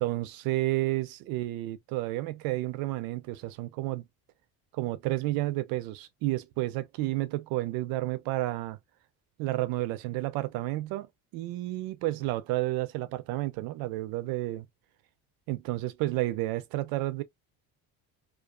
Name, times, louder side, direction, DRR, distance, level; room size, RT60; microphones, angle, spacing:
voice 1, 0.0-4.0 4.7-8.8 9.4-14.7 15.5-17.2, right 17 dB, 80° right, 0.5 m, -31 dB
2.4 x 2.4 x 2.3 m
cardioid pair, 165°, 35 cm